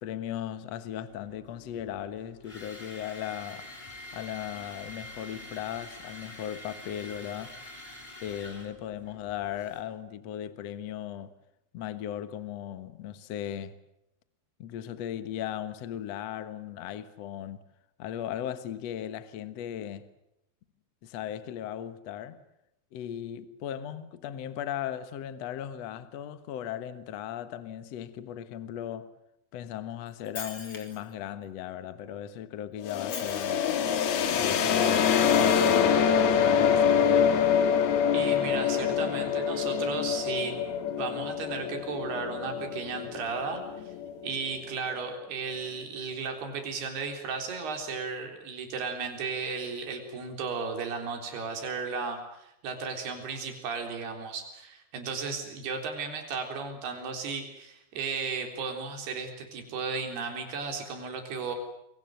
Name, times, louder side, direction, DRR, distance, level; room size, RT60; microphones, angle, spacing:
voice 1, 0.0-3.7 4.1-7.6 8.2-11.3 11.7-13.7 14.6-17.6 18.0-20.1 21.0-22.4 22.9-29.1 29.5-33.6 34.3-37.6, left 10 dB, 85° left, 1.4 m, -37 dB
sound 1, 1.1-9.8, left 1 dB, 10° left, 3.9 m, -46 dB
Shatter, 30.1-31.1 32.9-33.8, left 5 dB, 35° left, 3.8 m, -42 dB
sound 2, 32.8-44.5, left 7 dB, 65° left, 3.5 m, -25 dB
voice 2, 38.1-40.6 40.9-43.9 44.2-61.6, right 5 dB, 60° right, 5.7 m, -35 dB
28.5 x 23.0 x 7.9 m
omnidirectional pair, 5.2 m